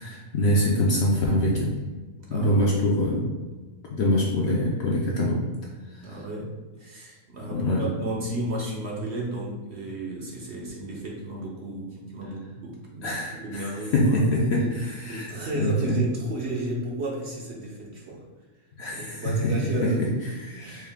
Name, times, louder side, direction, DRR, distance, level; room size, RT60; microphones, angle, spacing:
voice 1, 0.0-1.7 2.3-3.3 3.9-5.4 5.9-6.2 7.5-7.8 13.0-16.0 18.8-19.5 19.8-20.9, left 1 dB, 60° left, -3 dB, 0.7 m, -25 dB
voice 2, 2.3-2.7 6.0-13.2 13.4-14.2 15.1-18.2 18.9-20.0 20.6-20.9, right 1 dB, 55° right, -3 dB, 0.9 m, -33 dB
4.4 x 2.3 x 3.4 m, 1.3 s
omnidirectional pair, 1.5 m